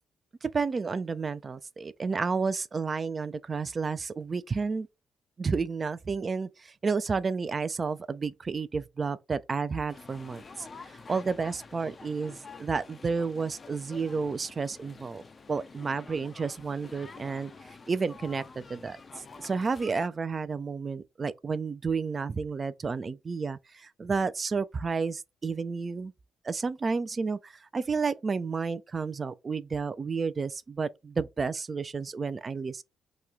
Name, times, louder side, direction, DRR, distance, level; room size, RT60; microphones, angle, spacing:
voice 1, 0.4-4.9 5.4-15.2 15.5-26.1 26.4-32.8, right 4 dB, 40° right, 0.3 m, -31 dB
sound 1, 9.9-20.1, left 4 dB, 40° left, 0.4 m, -48 dB
3.0 x 2.3 x 3.6 m
hypercardioid pair, 50°, 0 cm